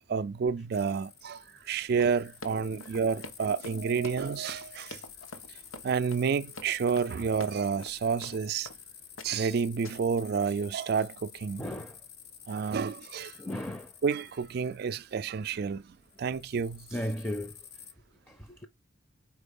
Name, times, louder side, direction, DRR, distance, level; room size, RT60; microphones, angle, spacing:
voice 1, 0.1-5.0 5.5-5.6 5.8-8.7 9.2-11.6 12.5-13.4 14.0-16.9, right 6 dB, 50° right, 0.3 m, -30 dB
sound 1, 0.7-15.7 16.0-17.9, left 8 dB, 50° left, 0.8 m, -50 dB
Run, 1.9-8.8 9.2-9.5 9.8-10.2, left 2 dB, 85° left, 1.1 m, -46 dB
voice 2, 11.6-12.0 13.4-13.9 16.9-17.6 18.3-18.7, left 1 dB, 10° left, 0.5 m, -35 dB
4.5 x 4.5 x 5.2 m
head